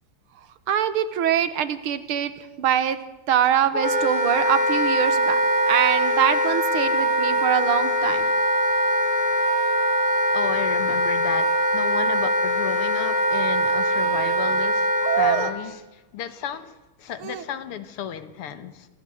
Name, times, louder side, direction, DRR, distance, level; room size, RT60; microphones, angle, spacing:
voice 1, 0.7-2.3 2.6-3.0 3.3-5.4 5.7-8.3 15.0-15.5 17.2-17.4, right 10 dB, 75° right, 2.1 m, -23 dB
Wind instrument woodwind instrument, 3.7-15.5, right 1 dB, 15° left, 2.3 m, -22 dB
voice 2, 10.3-18.9, left 9 dB, 85° left, 2.2 m, -33 dB
24.5 x 15.5 x 7.8 m
omnidirectional pair, 2.4 m